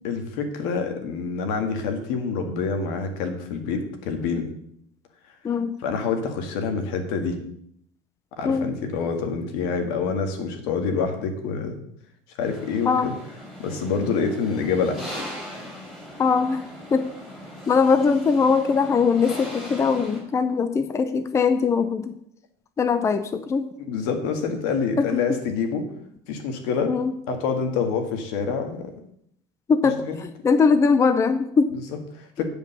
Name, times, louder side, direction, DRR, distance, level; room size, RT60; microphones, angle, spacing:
voice 1, 0.0-4.5 5.8-7.4 8.4-11.8 12.4-13.1 13.6-15.0 23.9-25.9 26.3-26.9 27.3-28.9 29.8-30.2 31.9-32.4, left 5 dB, 80° left, 5 dB, 1.9 m, -26 dB
sound 1, 12.4-20.2, equal, 5° left, 3.9 m, -39 dB
voice 2, 16.2-17.1 17.7-22.1 22.8-23.7 25.0-25.1 26.9-27.1 29.7-31.7, left 5 dB, 20° left, 10 dB, 0.6 m, -21 dB
9.4 x 5.3 x 6.7 m, 0.70 s
cardioid pair, 130°, 13 cm